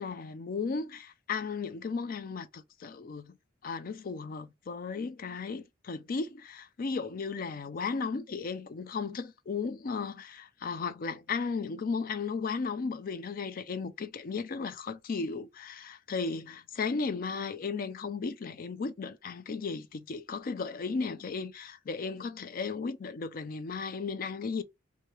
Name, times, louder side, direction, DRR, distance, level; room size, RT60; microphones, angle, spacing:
voice 1, 0.0-3.4 3.6-24.6, left 4 dB, 45° left, 0.4 m, -35 dB
3.2 x 2.7 x 4.5 m
head